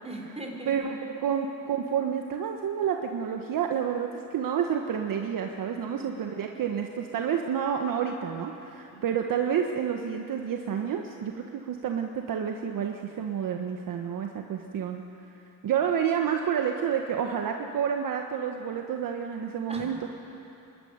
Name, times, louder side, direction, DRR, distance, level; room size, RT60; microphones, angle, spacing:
voice 1, 0.0-0.9 5.9-6.4 8.9-9.1 19.7-20.1, right 1 dB, 15° right, 0 dB, 5.0 m, -40 dB
voice 2, 0.7-15.0 15.6-20.1, right 8 dB, 55° right, 3 dB, 1.4 m, -29 dB
25.0 x 12.5 x 9.7 m, 2.9 s
supercardioid pair, 80°, 39 cm